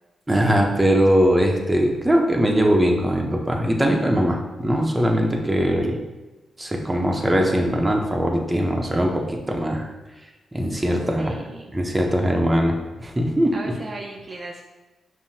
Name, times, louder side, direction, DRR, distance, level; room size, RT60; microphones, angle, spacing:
voice 1, 0.3-6.0 6.6-9.9 10.5-11.4 11.7-13.7, equal, 15° right, 1 dB, 0.8 m, -21 dB
voice 2, 11.2-11.7 13.5-14.6, right 2 dB, 45° right, 0 dB, 0.4 m, -36 dB
5.5 x 2.7 x 2.7 m, 1.1 s
supercardioid pair, 55°, 0 cm